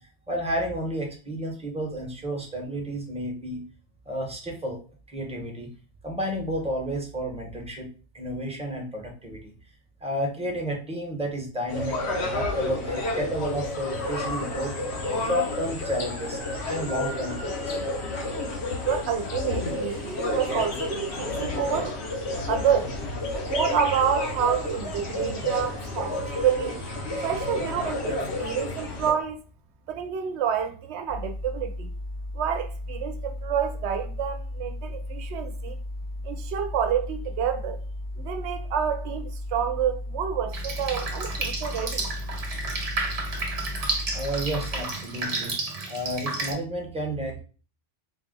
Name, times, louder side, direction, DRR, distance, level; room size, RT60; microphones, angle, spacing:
voice 1, 0.0-3.6 4.1-4.8 5.1-5.7 6.0-7.9 8.1-9.5 10.0-14.8 15.2-16.4 16.6-17.8 27.0-27.2 44.1-45.5 45.9-47.4, equal, 5° right, 0.9 m, -31 dB
sound 1, 11.7-29.1, left 2 dB, 65° left, 1.1 m, -31 dB
voice 2, 18.8-22.0 22.5-23.0 23.4-29.4 29.9-31.9 32.3-35.8 36.2-37.8 38.2-42.1, right 8 dB, 70° right, 0.9 m, -28 dB
sound 2, 31.1-44.8, left 1 dB, 10° left, 0.4 m, -35 dB
Drip, 40.5-46.5, right 3 dB, 40° right, 0.5 m, -31 dB
4.1 x 2.3 x 3.7 m
omnidirectional pair, 1.2 m